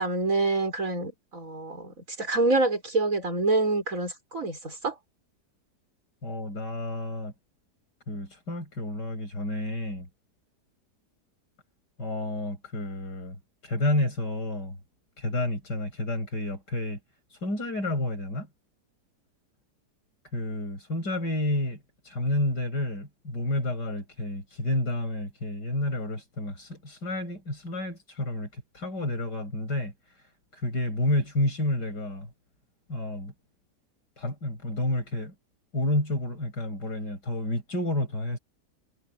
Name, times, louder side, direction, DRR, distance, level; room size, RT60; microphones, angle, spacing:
voice 1, 0.0-5.0, right 2 dB, 50° right, 5.1 m, -27 dB
voice 2, 6.2-7.3 8.1-10.1 12.0-13.4 13.6-14.8 15.2-17.0 17.4-18.5 20.3-29.9 30.5-32.3 32.9-33.3 34.2-35.3 35.7-38.4, left 1 dB, 85° left, 7.6 m, -30 dB
omnidirectional pair, 1.8 m